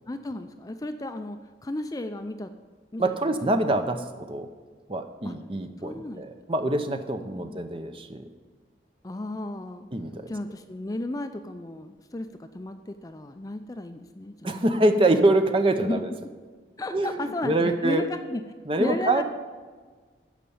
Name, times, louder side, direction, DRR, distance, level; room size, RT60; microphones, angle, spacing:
voice 1, 0.1-2.5 2.9-3.7 5.2-5.3 5.8-6.4 7.4-7.6 9.0-9.9 10.3-14.7 15.8-16.0 16.8-18.4 18.8-19.2, left 1 dB, 20° left, 8 dB, 0.4 m, -34 dB
voice 2, 3.0-4.5 4.9-8.3 9.9-10.3 14.4-16.1 16.9-18.0 18.6-19.2, right 2 dB, 30° right, 7 dB, 0.7 m, -25 dB
12.5 x 5.2 x 8.5 m, 1.4 s
head